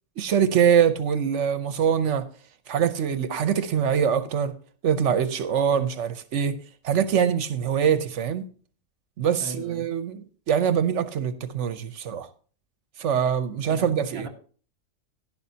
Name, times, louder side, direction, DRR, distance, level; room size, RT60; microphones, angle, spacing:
voice 1, 0.2-2.3 2.7-4.5 4.8-6.6 6.8-8.5 9.2-12.3 13.0-14.3, right 8 dB, 75° right, 1.1 m, -23 dB
voice 2, 9.4-9.9 13.8-14.3, right 2 dB, 55° right, 1.8 m, -39 dB
12.0 x 11.0 x 2.8 m
omnidirectional pair, 1.3 m